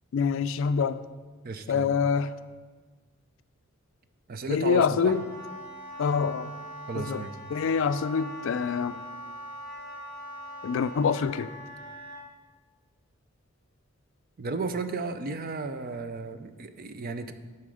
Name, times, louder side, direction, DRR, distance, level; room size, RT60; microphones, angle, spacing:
voice 1, 0.1-1.0 1.7-2.3 4.5-5.2 6.0-6.5 6.9-7.2 7.5-9.0 10.6-11.5, left 6 dB, 65° left, 13 dB, 0.3 m, -26 dB
voice 2, 1.4-1.9 4.3-5.1 6.9-7.3 14.4-17.3, right 3 dB, 45° right, 9 dB, 0.5 m, -33 dB
Wind instrument woodwind instrument, 4.6-12.2, equal, 15° left, 2.9 m, -42 dB
11.5 x 4.3 x 4.8 m, 1.4 s
head